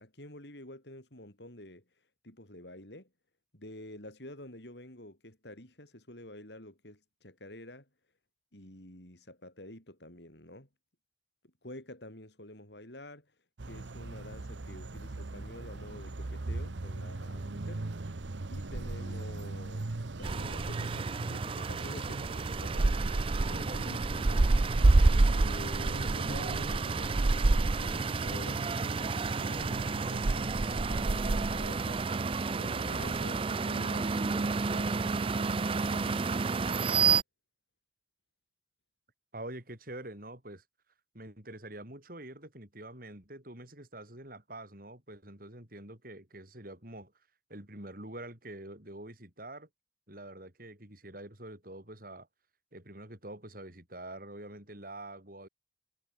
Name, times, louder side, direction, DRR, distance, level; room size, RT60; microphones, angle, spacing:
voice 1, 0.0-3.1 3.5-7.9 8.5-10.7 11.6-13.3 13.7-17.8 18.5-24.5 25.3-36.8, left 1 dB, 70° left, 6.8 m, -48 dB
sound 1, 13.6-33.4, right 2 dB, 85° right, 1.0 m, -31 dB
sound 2, 20.2-37.2, right 5 dB, 30° right, 0.4 m, -32 dB
voice 2, 39.3-40.6 41.1-47.1 47.5-49.7 50.1-52.3 52.7-55.5, right 1 dB, 50° right, 5.7 m, -46 dB
head